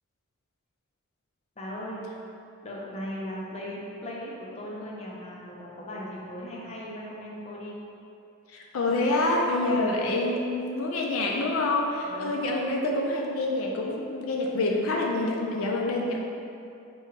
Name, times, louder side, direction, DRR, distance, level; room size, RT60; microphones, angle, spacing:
voice 1, 1.6-2.0 2.6-7.7 12.1-12.5, equal, 30° left, -4 dB, 0.6 m, -38 dB
voice 2, 8.5-16.2, left 2 dB, 80° left, 0 dB, 0.4 m, -27 dB
4.7 x 2.3 x 4.5 m, 2.7 s
head